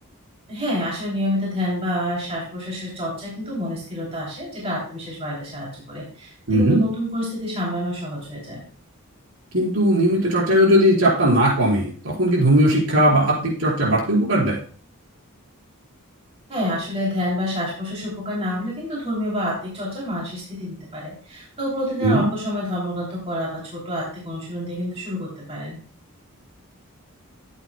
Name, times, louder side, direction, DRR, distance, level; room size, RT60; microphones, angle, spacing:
voice 1, 0.5-8.6 16.5-25.8, equal, 30° right, -5 dB, 3.1 m, -28 dB
voice 2, 6.5-6.8 9.5-14.6 22.0-22.3, equal, 65° right, -4 dB, 4.7 m, -18 dB
14.5 x 8.5 x 2.2 m, 0.43 s
head